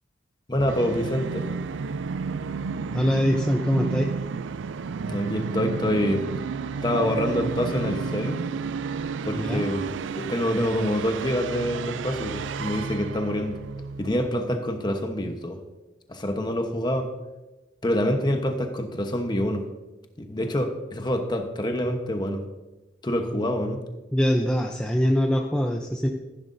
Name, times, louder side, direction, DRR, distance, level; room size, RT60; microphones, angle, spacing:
voice 1, 0.5-1.5 5.1-6.3 6.8-8.4 9.2-9.9 10.1-13.6 14.0-15.6 16.1-17.1 17.8-19.7 20.2-22.4 23.0-23.8, left 1 dB, 25° left, 5 dB, 1.0 m, -26 dB
Musical instrument, 0.6-14.3, right 5 dB, 70° right, 0.4 m, -32 dB
voice 2, 2.9-4.1 9.4-9.6 24.1-26.1, equal, 5° left, 1 dB, 0.5 m, -23 dB
14.5 x 10.5 x 2.6 m, 1.1 s
head